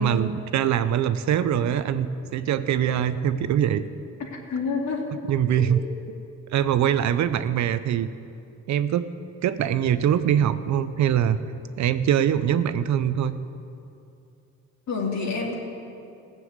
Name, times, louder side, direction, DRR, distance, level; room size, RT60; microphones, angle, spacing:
voice 1, 0.0-3.8 5.3-5.8 6.5-8.1 8.7-9.1 9.4-11.4 11.8-13.3, right 9 dB, 65° right, 12 dB, 0.7 m, -23 dB
voice 2, 4.5-5.1 5.5-5.8 14.9-15.5, left 4 dB, 65° left, -1 dB, 2.7 m, -28 dB
16.0 x 7.0 x 8.0 m, 2.6 s
cardioid pair, 90°, 30 cm